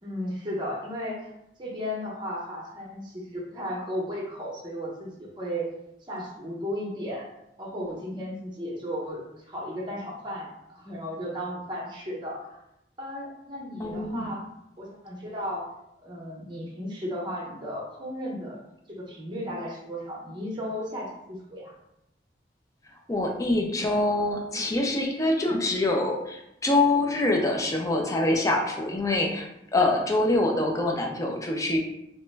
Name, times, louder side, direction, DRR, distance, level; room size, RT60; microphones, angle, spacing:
voice 1, 0.0-1.3 1.6-5.7 6.1-7.3 7.6-12.6 13.0-14.4 14.8-15.6 16.0-18.6 18.9-21.7, equal, 25° right, -3 dB, 0.7 m, -35 dB
voice 2, 13.8-14.3 23.1-31.8, left 2 dB, 20° left, 1 dB, 0.4 m, -25 dB
3.0 x 2.2 x 3.2 m, 0.83 s
head